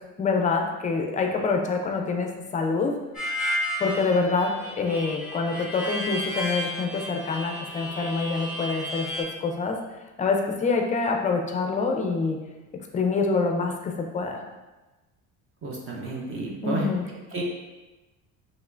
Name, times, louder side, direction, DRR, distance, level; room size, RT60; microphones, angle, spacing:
voice 1, 0.2-2.9 3.8-9.8 10.2-12.4 12.9-14.4 16.6-17.1, left 4 dB, 20° left, 3 dB, 0.4 m, -26 dB
Harmonica, 3.1-9.2, left 1 dB, 5° right, 1.5 m, -32 dB
voice 2, 15.6-16.9 17.3-17.5, right 2 dB, 40° right, -1 dB, 0.7 m, -31 dB
5.3 x 3.1 x 2.5 m, 1.1 s
cardioid pair, 145°, 34 cm